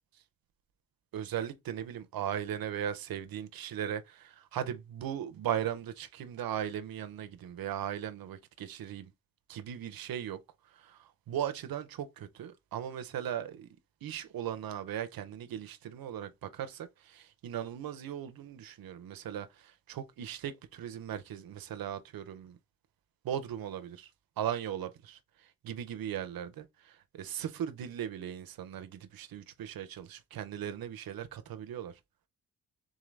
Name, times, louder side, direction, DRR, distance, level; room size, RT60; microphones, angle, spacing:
voice 1, 1.1-9.1 9.5-10.4 10.8-13.7 14.0-22.6 23.2-24.1 24.4-25.2 25.6-31.9, right 10 dB, 90° right, 0.7 m, -38 dB
3.8 x 3.7 x 3.2 m
wide cardioid pair, 155°, 34 cm